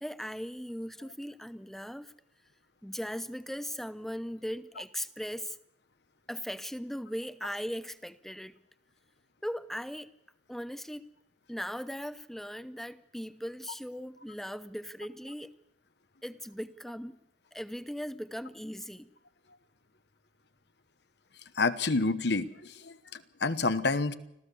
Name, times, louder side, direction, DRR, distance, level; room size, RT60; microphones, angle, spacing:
voice 1, 0.0-2.1 2.8-5.6 6.3-8.6 9.4-10.1 10.5-11.1 11.5-15.5 16.2-17.2 17.5-19.1, equal, ahead, 0.8 m, -38 dB
voice 2, 21.6-24.1, left 3 dB, 65° left, 1.1 m, -29 dB
25.5 x 15.5 x 6.9 m
head